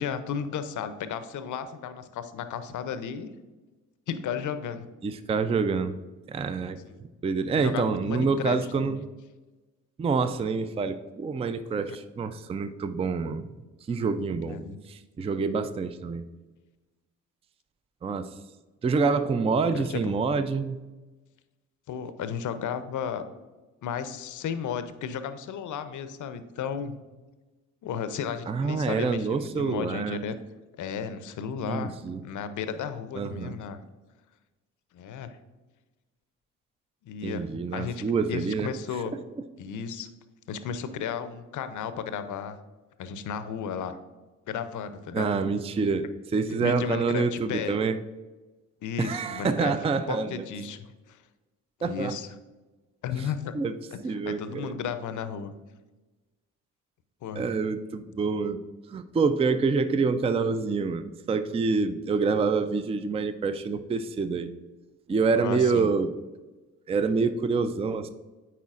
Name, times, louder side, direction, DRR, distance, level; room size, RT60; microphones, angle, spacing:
voice 1, 0.0-3.3 4.1-4.9 6.8-7.0 7.6-8.9 14.5-14.8 19.7-20.1 21.9-23.2 23.8-26.9 27.8-30.4 30.8-31.9 32.2-33.8 34.9-35.4 37.0-37.5 37.7-39.1 39.6-40.1 40.5-42.6 43.0-43.9 44.5-45.3 46.6-47.8 48.8-49.7 50.1-51.2 51.8-52.3 53.0-53.5 53.9-54.0 54.3-55.5 57.2-57.4 65.4-65.9, left 7 dB, 55° left, 11 dB, 0.6 m, -34 dB
voice 2, 5.0-5.9 6.3-6.8 7.2-9.1 10.0-13.5 13.9-14.6 14.9-16.2 18.0-18.3 18.8-20.8 28.5-30.2 31.7-32.2 33.1-33.6 37.2-38.7 45.1-48.0 49.0-50.5 51.8-52.1 53.5-53.7 54.0-54.7 57.4-58.6 58.9-64.5 65.1-66.1 66.9-68.1, right 4 dB, 15° right, 11 dB, 0.4 m, -27 dB
9.0 x 4.2 x 2.4 m, 1.2 s
hypercardioid pair, 45°, 37 cm